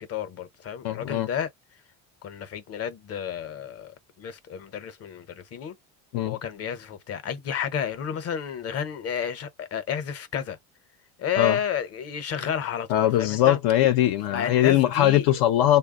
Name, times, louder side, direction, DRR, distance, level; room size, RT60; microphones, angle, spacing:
voice 1, 0.0-1.5 2.2-5.8 6.2-10.6 11.2-13.6 14.3-15.3, left 8 dB, 40° left, 0.8 m, -31 dB
voice 2, 0.8-1.3 6.1-6.4 11.4-11.6 12.9-15.8, left 13 dB, 70° left, 0.7 m, -21 dB
3.4 x 2.2 x 3.7 m
cardioid pair, 135°, 39 cm